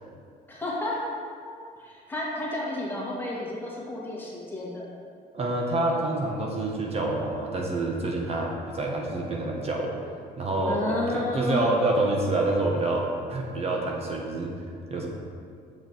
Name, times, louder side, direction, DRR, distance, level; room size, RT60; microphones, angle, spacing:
voice 1, 0.5-1.0 1.8-4.9 10.7-11.7, left 1 dB, 10° left, -6 dB, 1.9 m, -31 dB
voice 2, 5.3-9.9 10.4-14.5 14.9-15.1, right 2 dB, 40° right, -1 dB, 1.0 m, -27 dB
7.0 x 5.7 x 4.5 m, 2.3 s
cardioid pair, 110°, 17 cm